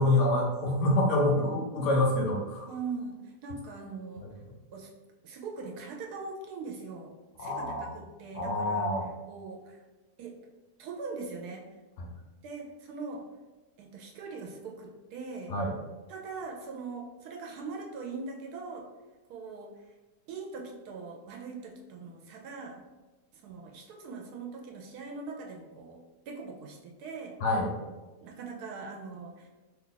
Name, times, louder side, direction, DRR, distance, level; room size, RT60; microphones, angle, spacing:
voice 1, 0.0-2.7 7.4-8.0 8.3-9.1 12.0-12.1 15.5-15.8 27.4-27.7, left 1 dB, 65° left, -1 dB, 0.8 m, -26 dB
voice 2, 2.7-4.2 4.7-4.9 5.2-7.1 7.4-8.9 9.3-9.8 10.2-10.3 10.8-11.6 12.4-13.3 13.8-15.5 16.1-18.9 19.3-19.7 20.3-22.8 23.4-26.0 26.3-27.4 28.2-29.5, right 4 dB, 85° right, 1 dB, 1.1 m, -41 dB
2.9 x 2.4 x 3.8 m, 1.2 s
omnidirectional pair, 1.6 m